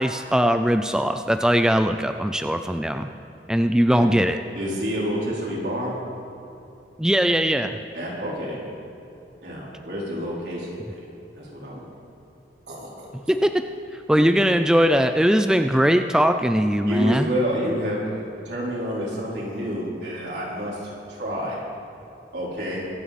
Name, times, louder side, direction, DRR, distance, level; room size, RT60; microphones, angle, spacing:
voice 1, 0.0-3.1 3.5-4.4 7.0-7.8 13.3-13.6 14.1-17.3, equal, 5° right, 7 dB, 0.4 m, -20 dB
voice 2, 4.5-6.0 7.9-8.6 9.4-11.0 11.3-11.9 12.7-13.1 14.1-14.4 16.8-21.6 22.3-22.8, equal, 80° right, -5 dB, 4.1 m, -29 dB
24.5 x 9.2 x 4.2 m, 2.7 s
head